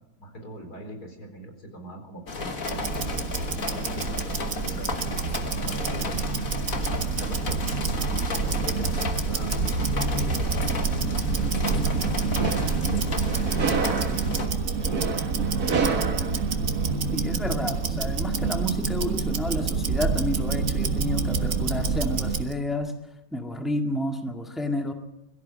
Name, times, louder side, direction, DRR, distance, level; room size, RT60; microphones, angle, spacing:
voice 1, 0.2-2.6 3.6-6.4 7.2-7.7 8.3-9.6 10.1-13.4 13.7-15.3, right 1 dB, 85° left, 4 dB, 4.6 m, -42 dB
sound 1, 2.3-14.5, left 4 dB, 65° left, 2.1 m, -34 dB
Tick-tock, 2.6-22.5, right 5 dB, 60° right, 1.8 m, -27 dB
sound 2, 12.0-17.2, right 4 dB, 75° right, 2.3 m, -30 dB
voice 2, 17.1-22.9 23.3-24.9, left 1 dB, ahead, 4 dB, 1.8 m, -30 dB
22.5 x 14.5 x 8.8 m, 0.93 s
omnidirectional pair, 1.6 m